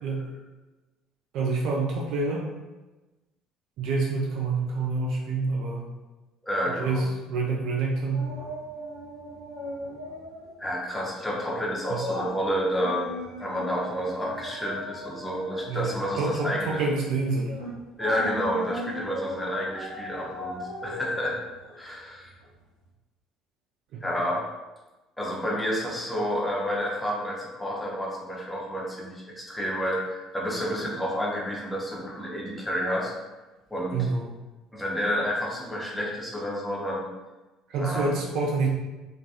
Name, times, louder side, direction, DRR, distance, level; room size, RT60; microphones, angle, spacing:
voice 1, 1.3-2.5 3.8-5.9 6.8-8.3 11.9-12.0 15.7-17.5 23.9-24.0 33.9-34.2 37.7-38.7, right 3 dB, 60° right, -2 dB, 0.3 m, -27 dB
voice 2, 6.4-7.0 10.6-13.1 13.4-16.8 18.0-21.4 21.8-22.3 24.0-24.5 25.2-33.1 33.7-34.1 34.7-37.1 37.8-38.2, equal, 10° left, -3 dB, 0.7 m, -30 dB
sound 1, 8.1-10.5 10.8-11.1 11.5-22.5 22.8-22.9, equal, 85° right, 0.7 m, -38 dB
2.2 x 2.2 x 2.7 m, 1.1 s
figure-of-eight pair, 55°, 0 cm